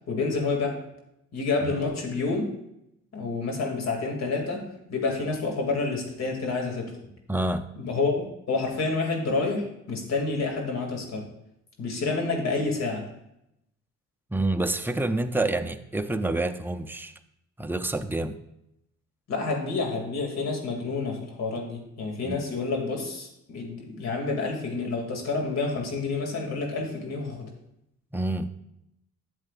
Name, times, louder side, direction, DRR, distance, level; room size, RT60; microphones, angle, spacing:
voice 1, 0.1-0.8 1.3-2.5 3.1-7.0 7.8-8.1 8.5-11.3 11.8-13.1 19.3-27.5, left 3 dB, 60° left, 2 dB, 2.5 m, -29 dB
voice 2, 7.3-7.7 14.3-17.1 17.6-18.4 22.2-22.4 28.1-28.5, right 2 dB, 5° right, 8 dB, 0.5 m, -28 dB
12.5 x 7.7 x 2.5 m, 0.82 s
cardioid pair, 90°, 30 cm